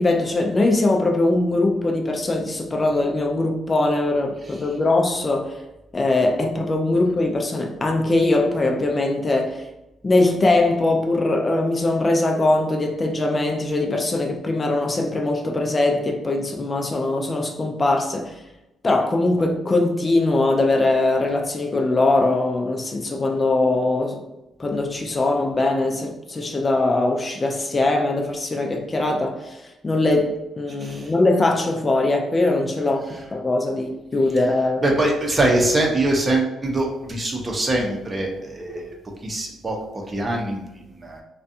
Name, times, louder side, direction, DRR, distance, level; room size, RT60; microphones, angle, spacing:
voice 1, 0.0-5.6 5.9-9.6 10.0-18.4 18.8-24.2 24.6-34.8, left 2 dB, 30° left, 0.3 m, -21 dB
voice 2, 30.8-31.1 34.8-38.9 39.2-39.8 40.1-41.2, right 2 dB, 30° right, 0.6 m, -23 dB
2.5 x 2.2 x 2.6 m
cardioid pair, 90°, 0 cm